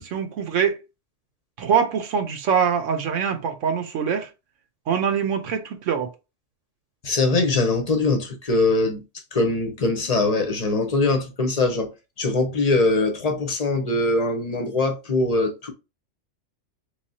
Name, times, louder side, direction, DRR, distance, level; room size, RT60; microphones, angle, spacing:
voice 1, 0.0-0.8 1.6-4.3 4.9-6.1, right 7 dB, 80° right, 1.0 m, -23 dB
voice 2, 7.0-9.0 9.3-11.9 12.2-15.7, left 2 dB, 35° left, 0.8 m, -22 dB
3.4 x 3.2 x 2.7 m
omnidirectional pair, 1.2 m